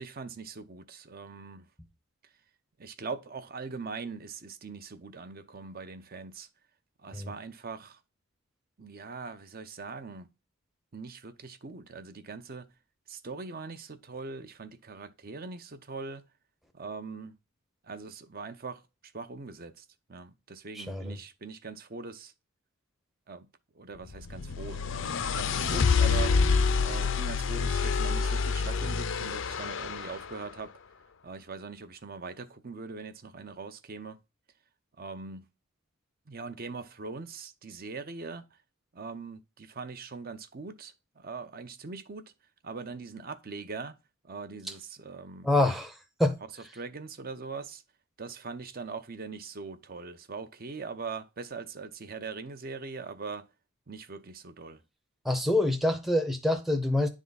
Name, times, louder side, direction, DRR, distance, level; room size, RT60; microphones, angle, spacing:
voice 1, 0.0-1.7 2.8-6.5 7.0-8.0 8.8-10.3 10.9-12.7 13.1-16.2 16.7-17.4 17.8-18.8 19.1-22.3 23.3-23.5 23.7-26.4 26.8-30.7 31.2-34.2 35.0-35.4 36.3-38.6 38.9-42.3 42.6-44.0 44.2-45.5 46.7-47.8 48.2-53.5 53.9-54.8, right 4 dB, 45° right, 0.7 m, -41 dB
voice 2, 20.7-21.2 45.4-46.4 55.2-57.1, left 1 dB, ahead, 0.6 m, -26 dB
sound 1, 24.1-30.2, left 5 dB, 60° left, 0.5 m, -27 dB
10.0 x 3.6 x 4.0 m
head